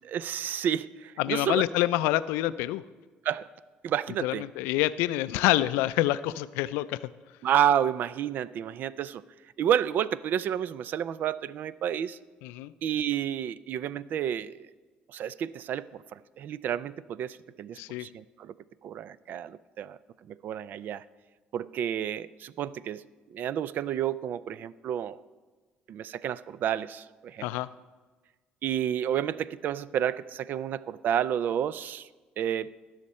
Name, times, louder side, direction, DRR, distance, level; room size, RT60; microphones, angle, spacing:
voice 1, 0.0-1.6 3.2-3.5 3.8-4.4 7.4-9.2 9.6-12.2 12.8-14.7 15.1-18.5 18.8-20.0 20.3-21.0 21.5-23.0 23.3-25.2 25.9-27.5 28.6-32.1 32.4-32.7, right 9 dB, 60° right, 19 dB, 0.4 m, -30 dB
voice 2, 1.2-2.8 4.2-7.0 12.4-12.7 17.8-18.1 27.4-27.7, left 15 dB, 90° left, 16 dB, 0.3 m, -27 dB
19.0 x 6.5 x 4.2 m, 1.3 s
supercardioid pair, 90°, 4 cm